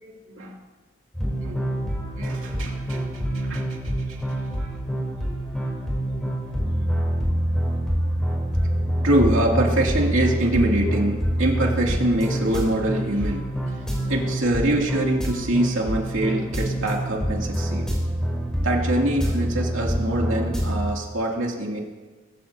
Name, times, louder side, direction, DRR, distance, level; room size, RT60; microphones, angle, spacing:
sound 1, 1.1-20.9, equal, 5° left, 3.6 m, -26 dB
voice 1, 2.1-3.0 3.3-3.8 4.1-4.2 9.0-13.8 14.1-17.9 18.6-21.8, right 1 dB, 90° right, -1 dB, 2.7 m, -24 dB
22.0 x 15.0 x 2.8 m, 1.3 s
head